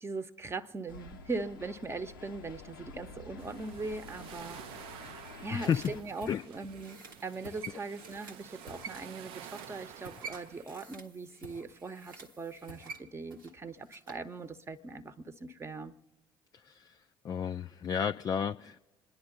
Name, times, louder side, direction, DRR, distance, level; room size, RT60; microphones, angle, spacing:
voice 1, 0.0-5.0 5.4-15.9, right 3 dB, 25° right, 0.8 m, -40 dB
sound 1, 0.9-6.0, left 4 dB, 80° left, 0.6 m, -49 dB
sound 2, 3.4-10.6, right 10 dB, 55° right, 0.5 m, -50 dB
sound 3, 4.9-14.3 14.6-14.7, right 4 dB, 80° right, 0.9 m, -49 dB
voice 2, 5.5-5.9 6.3-6.4 16.6-17.0 17.2-18.8, left 7 dB, 35° left, 0.4 m, -32 dB
28.0 x 10.5 x 3.8 m
figure-of-eight pair, 50°, 11 cm